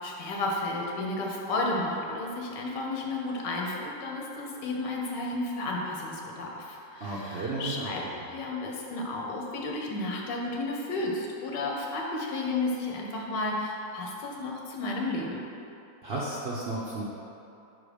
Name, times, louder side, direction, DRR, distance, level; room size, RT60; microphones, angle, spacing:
voice 1, 0.0-15.4, left 2 dB, 85° left, -1 dB, 1.5 m, -32 dB
voice 2, 7.0-7.9 16.0-17.0, right 2 dB, 60° right, -7 dB, 0.6 m, -33 dB
5.4 x 3.8 x 4.9 m, 2.8 s
omnidirectional pair, 1.8 m